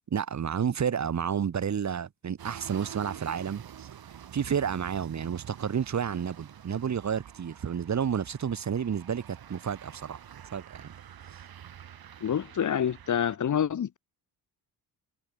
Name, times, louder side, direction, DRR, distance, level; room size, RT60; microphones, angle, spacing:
voice 1, 0.1-3.9 4.3-10.2 10.5-10.9, right 7 dB, 45° right, 2.0 m, -30 dB
sound 1, 2.4-13.4, right 9 dB, 65° right, 6.5 m, -47 dB
voice 2, 12.2-14.0, left 8 dB, 50° left, 1.4 m, -27 dB
cardioid pair, 105°, 39 cm